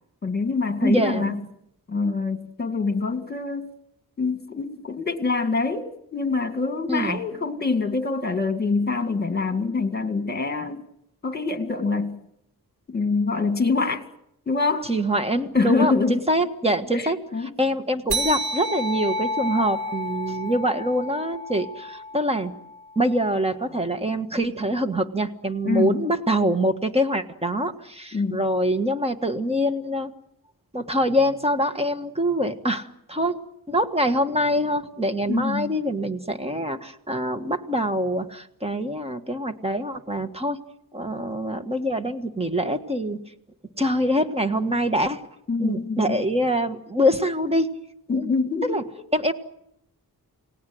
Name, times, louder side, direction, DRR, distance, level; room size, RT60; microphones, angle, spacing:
voice 1, 0.2-1.4 1.9-3.7 4.2-10.8 11.2-12.3 12.9-14.1 14.5-14.9 15.5-16.2 16.9-17.5 25.7-26.1 28.1-28.4 35.3-35.8 45.5-46.2 48.1-48.8, left 4 dB, 25° left, 2.2 m, -25 dB
voice 2, 0.8-1.4 6.9-7.2 14.9-17.2 17.6-22.5 22.9-30.1 30.7-33.4 33.7-40.6 40.9-43.2 43.8-45.2 45.6-47.7 48.1-48.3 48.7-48.8 49.1-49.3, equal, 15° right, 1.5 m, -24 dB
sound 1, 18.1-23.0, equal, 90° right, 3.0 m, -30 dB
29.5 x 18.5 x 7.9 m
wide cardioid pair, 145°, 37 cm